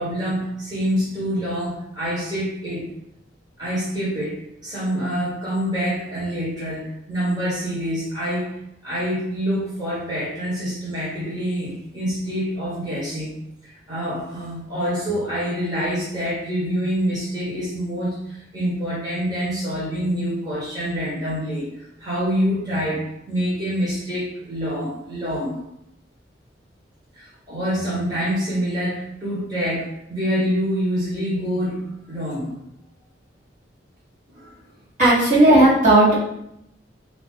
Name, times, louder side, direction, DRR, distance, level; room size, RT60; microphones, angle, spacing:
voice 1, 0.0-2.8 3.6-4.4 4.6-8.5 8.8-13.3 13.7-21.7 22.0-25.5 27.1-32.6 34.3-34.5, equal, 20° right, -9 dB, 1.4 m, -26 dB
voice 2, 35.0-36.1, right 1 dB, 40° right, -9 dB, 1.6 m, -14 dB
3.9 x 3.0 x 3.7 m, 0.79 s
head